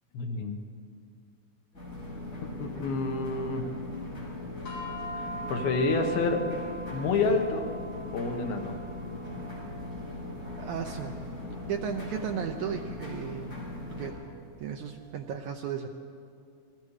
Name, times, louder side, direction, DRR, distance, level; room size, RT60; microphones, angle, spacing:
voice 1, 0.1-0.6 2.6-3.6 5.2-6.4 6.9-7.7 8.1-8.7, left 3 dB, 80° left, 4 dB, 3.3 m, -28 dB
sound 1, 1.7-14.1, left 2 dB, 25° left, 6.6 m, -39 dB
sound 2, 4.7-15.1, right 1 dB, 60° left, 8.0 m, -44 dB
voice 2, 10.6-11.1 11.7-13.5 13.9-14.1 14.6-15.9, right 8 dB, 75° right, 4 dB, 1.7 m, -34 dB
28.5 x 21.5 x 4.9 m, 2.4 s
omnidirectional pair, 4.3 m